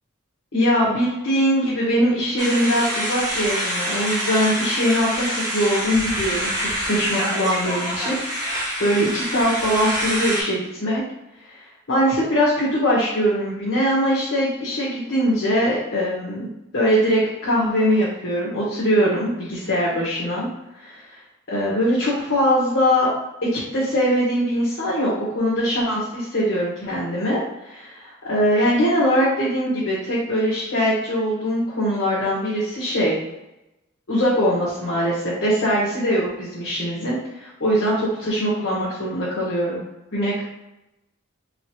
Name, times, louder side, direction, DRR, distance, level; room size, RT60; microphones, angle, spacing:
voice 1, 0.5-6.5 6.8-8.2 8.4-11.0 11.4-16.5 16.7-20.5 20.8-21.2 21.5-23.1 23.5-33.1 34.1-39.8 40.1-40.4, equal, 60° left, -9 dB, 1.4 m, -22 dB
sound 1, 2.4-10.4, equal, 15° right, 1.5 m, -26 dB
3.9 x 3.8 x 3.1 m, 0.93 s
head